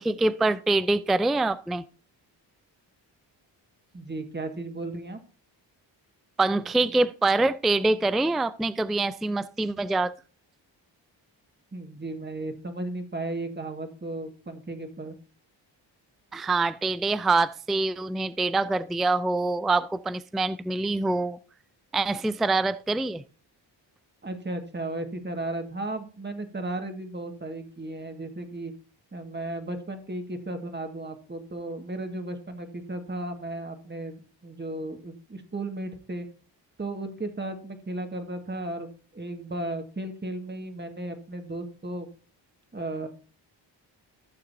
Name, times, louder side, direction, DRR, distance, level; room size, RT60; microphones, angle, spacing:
voice 1, 0.0-1.8 6.4-10.1 16.3-21.4 21.9-23.2, right 2 dB, ahead, 0.4 m, -25 dB
voice 2, 3.9-5.2 11.7-15.2 24.2-28.7 29.1-36.3 36.8-42.1 42.7-43.1, right 2 dB, 25° right, 1.9 m, -35 dB
15.0 x 6.6 x 2.7 m
cardioid pair, 70°, 46 cm